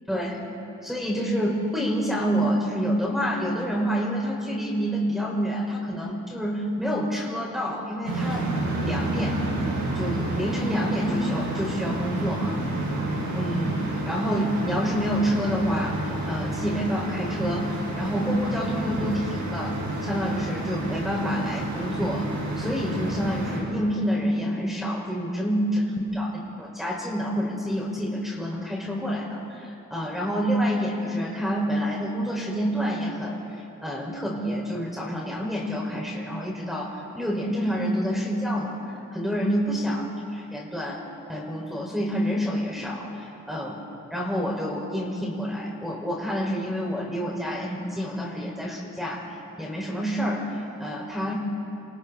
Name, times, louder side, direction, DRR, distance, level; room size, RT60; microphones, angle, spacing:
voice 1, 0.1-0.5 0.8-8.5 8.8-9.5 9.9-12.6 13.3-38.8 39.1-40.1 40.3-41.0 41.3-43.8 44.1-49.3 49.6-51.3, equal, ahead, -4 dB, 5.6 m, -28 dB
sound 1, 8.0-23.6, right 2 dB, 90° right, 6.2 m, -30 dB
28.5 x 28.0 x 4.3 m, 2.7 s
cardioid pair, 45°, 32 cm